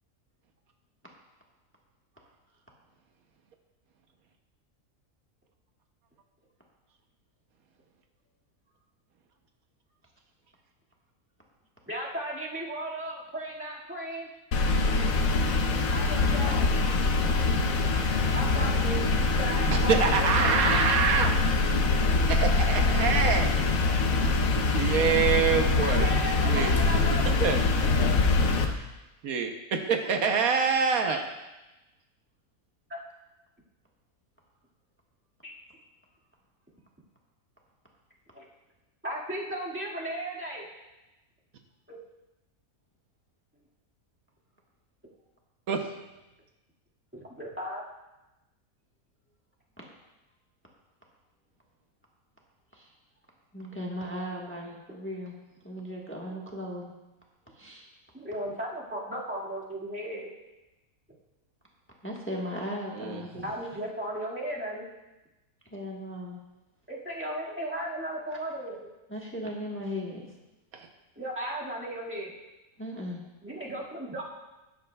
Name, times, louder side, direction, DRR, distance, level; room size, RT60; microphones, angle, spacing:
voice 1, 11.9-14.3 15.9-16.7 18.3-19.0 19.4-20.8 25.8-27.5 31.1-31.2 32.9-33.0 35.4-35.5 38.3-38.5 39.0-40.6 41.9-42.0 47.1-47.8 58.1-60.3 63.3-64.9 66.9-68.9 71.2-72.4 73.4-74.3, equal, 10° right, -5 dB, 1.8 m, -35 dB
sound 1, 14.5-28.7, left 3 dB, 70° left, 1.3 m, -24 dB
voice 2, 19.7-21.3 22.3-23.6 24.7-26.2 26.4-26.7 27.4-27.6 29.2-31.2 45.7-45.9 62.9-63.4 70.7-70.9, right 6 dB, 80° right, 4 dB, 1.3 m, -26 dB
voice 3, 53.5-55.3 55.6-56.9 57.6-57.9 62.0-63.5 65.7-66.4 69.1-70.2 72.8-73.2, equal, 10° left, -3 dB, 1.2 m, -37 dB
13.5 x 10.5 x 2.3 m, 1.0 s
omnidirectional pair, 1.5 m